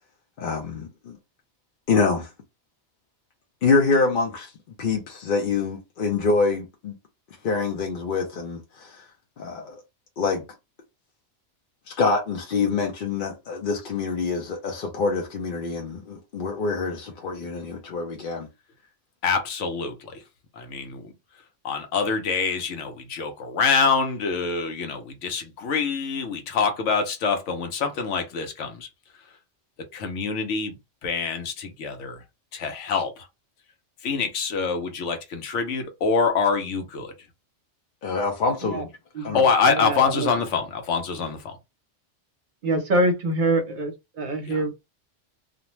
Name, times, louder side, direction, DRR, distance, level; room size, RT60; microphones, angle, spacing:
voice 1, 0.4-1.2 1.9-2.3 3.6-4.5 4.8-7.0 7.4-9.0 9.4-9.8 10.2-10.4 11.9-18.5 38.0-38.9 39.2-39.4, left 4 dB, 55° left, 0.7 m, -25 dB
voice 2, 19.2-20.2 20.6-21.1 21.6-28.9 29.9-30.8 31.0-32.2 32.5-33.3 34.0-37.1 39.3-41.5 44.5-44.6, left 5 dB, 80° left, 1.0 m, -25 dB
voice 3, 39.7-40.3 42.6-44.7, right 1 dB, 50° right, 0.7 m, -25 dB
2.5 x 2.1 x 3.0 m
omnidirectional pair, 1.2 m